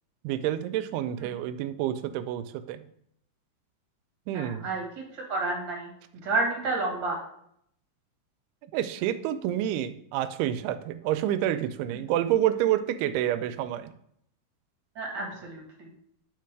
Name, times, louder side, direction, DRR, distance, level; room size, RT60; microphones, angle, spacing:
voice 1, 0.2-2.8 4.3-4.7 8.7-13.9, right 12 dB, 85° right, 11 dB, 2.5 m, -28 dB
voice 2, 4.3-4.9 5.1-5.9 6.2-7.2 14.9-15.9, right 2 dB, 45° right, 0 dB, 1.6 m, -30 dB
8.4 x 4.5 x 4.6 m, 0.70 s
omnidirectional pair, 4.7 m